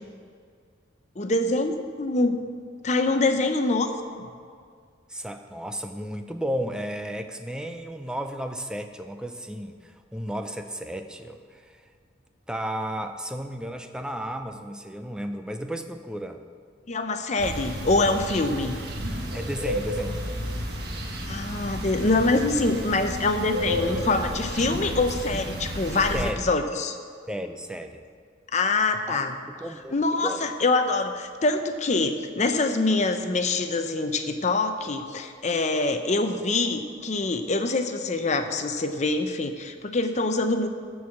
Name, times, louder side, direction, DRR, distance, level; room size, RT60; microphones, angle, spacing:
voice 1, 1.2-2.4 2.8-3.9 4.2-4.3 16.9-18.8 21.3-27.0 28.5-29.4 29.9-40.7, left 3 dB, 40° left, 7 dB, 0.7 m, -25 dB
voice 2, 5.1-11.8 12.5-16.4 19.3-20.3 26.1-26.4 27.3-28.0 29.1-29.2 29.6-29.9 30.2-30.4, equal, 5° right, 7 dB, 0.5 m, -33 dB
sound 1, 17.4-26.3, equal, 55° right, 1.3 m, -32 dB
13.5 x 4.8 x 7.2 m, 2.1 s
head